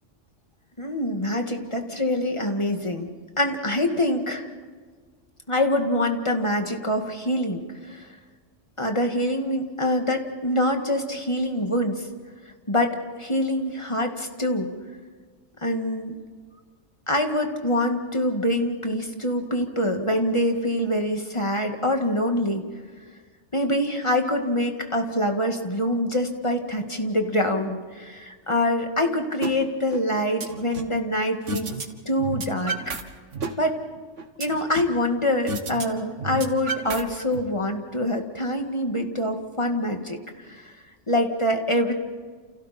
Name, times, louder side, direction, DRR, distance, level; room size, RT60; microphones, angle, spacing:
voice 1, 0.8-3.1 3.4-4.5 5.5-8.1 8.8-12.1 12.7-14.7 15.6-16.2 17.1-22.6 23.5-31.7 32.1-32.8 33.6-33.8 34.4-40.2 40.5-40.7 41.1-41.9, left 1 dB, 25° left, 3 dB, 2.1 m, -25 dB
sound 1, 29.4-29.5 29.9-31.0 31.5-31.9 32.1-33.0 33.3-35.0 35.5-35.8 36.1-37.4, right 3 dB, 85° right, 2.0 m, -31 dB
29.5 x 29.0 x 4.4 m, 1.5 s
omnidirectional pair, 1.2 m